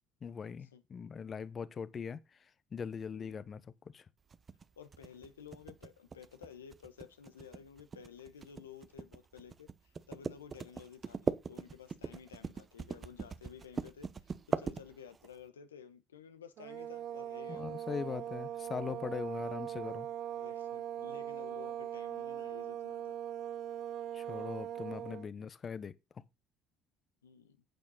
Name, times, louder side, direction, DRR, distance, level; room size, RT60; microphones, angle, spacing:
voice 1, 0.2-2.2 2.7-3.6 3.9-4.0 17.5-20.1 24.1-25.9, left 6 dB, 35° left, 1.1 m, -40 dB
sound 1, 4.3-15.3, right 5 dB, 35° right, 1.0 m, -40 dB
voice 2, 4.8-18.1 20.3-23.2 25.3-25.4 27.2-27.6, left 7 dB, 85° left, 1.1 m, -53 dB
sound 2, 16.6-25.3, right 11 dB, 55° right, 0.6 m, -40 dB
10.5 x 8.7 x 4.1 m
hypercardioid pair, 60°, 0 cm